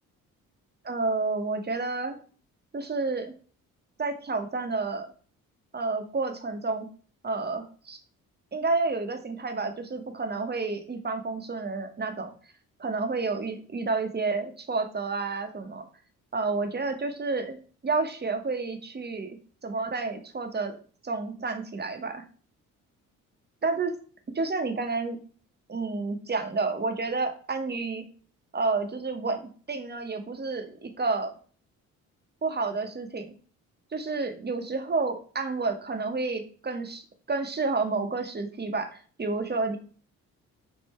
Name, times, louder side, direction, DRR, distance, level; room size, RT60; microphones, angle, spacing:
voice 1, 0.8-2.2 2.7-3.3 4.0-5.1 5.7-6.9 7.2-8.0 8.5-12.3 12.8-15.9 16.3-17.6 17.8-19.4 19.6-20.7 21.0-22.2 23.6-23.9 24.3-25.2 25.7-28.0 28.5-31.3 32.4-33.3 33.9-37.0 37.3-39.8, right 3 dB, 25° right, 6 dB, 0.9 m, -30 dB
3.6 x 2.6 x 4.2 m, 0.41 s
hypercardioid pair, 50°, 38 cm